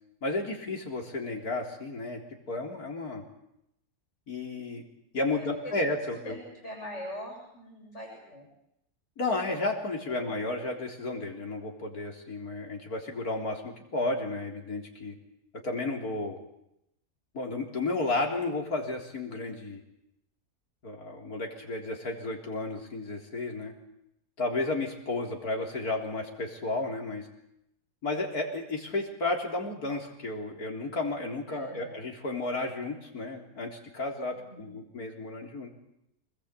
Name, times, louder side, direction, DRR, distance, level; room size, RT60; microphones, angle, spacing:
voice 1, 0.2-2.2 2.5-3.2 4.3-4.8 5.1-6.4 9.2-15.2 15.6-16.4 17.3-19.8 20.8-23.7 24.4-27.3 28.0-35.7, left 2 dB, 75° left, 1 dB, 4.2 m, -32 dB
voice 2, 5.3-5.8 6.1-8.5 10.0-10.3 31.5-32.1 34.3-34.8, equal, 45° left, -1 dB, 7.3 m, -43 dB
26.0 x 20.5 x 8.3 m, 0.81 s
omnidirectional pair, 1.6 m